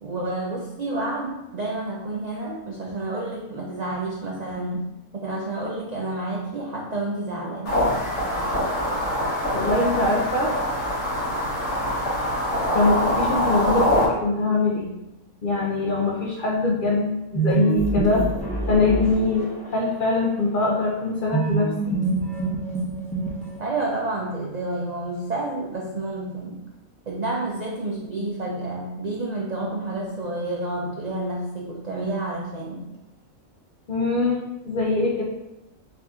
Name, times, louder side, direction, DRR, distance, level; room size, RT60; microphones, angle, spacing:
voice 1, 0.0-4.9 5.1-7.8 15.8-16.2 23.6-26.6 27.1-32.9, right 2 dB, 60° right, -2 dB, 0.4 m, -29 dB
sound 1, 7.7-14.1, equal, 75° left, 2.2 m, -24 dB
voice 2, 9.5-10.6 12.7-14.9 15.4-18.3 18.7-21.9 33.9-35.2, left 3 dB, 55° left, -3 dB, 0.6 m, -23 dB
sound 2, 17.3-19.9 21.3-23.8, right 3 dB, 5° left, 0.7 m, -25 dB
4.6 x 2.6 x 3.5 m, 0.93 s
omnidirectional pair, 1.4 m